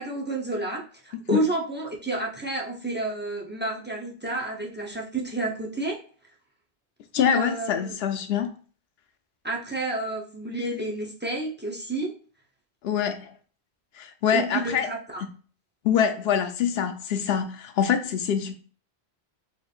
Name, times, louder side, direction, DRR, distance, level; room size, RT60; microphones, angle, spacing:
voice 1, 0.0-6.0 7.3-7.9 9.4-12.1 14.3-15.2, right 2 dB, 15° right, 0.5 m, -30 dB
voice 2, 7.1-8.5 12.8-13.3 14.0-14.9 15.8-18.5, left 8 dB, 75° left, 0.8 m, -25 dB
4.3 x 3.3 x 2.4 m
omnidirectional pair, 1.1 m